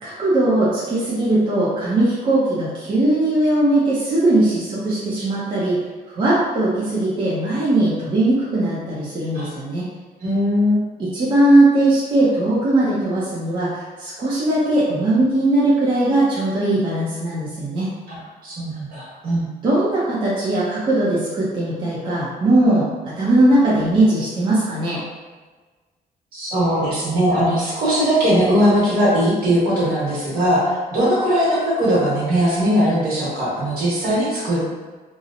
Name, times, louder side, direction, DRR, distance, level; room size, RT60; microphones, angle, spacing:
voice 1, 0.0-5.8 6.1-9.8 11.0-17.9 19.6-22.9 23.2-25.0, right 1 dB, 30° right, -9 dB, 0.5 m, -19 dB
voice 2, 10.2-10.8 18.1-19.5 26.3-34.6, equal, 65° right, -7 dB, 1.1 m, -19 dB
2.7 x 2.0 x 2.5 m, 1.3 s
wide cardioid pair, 180°, 16 cm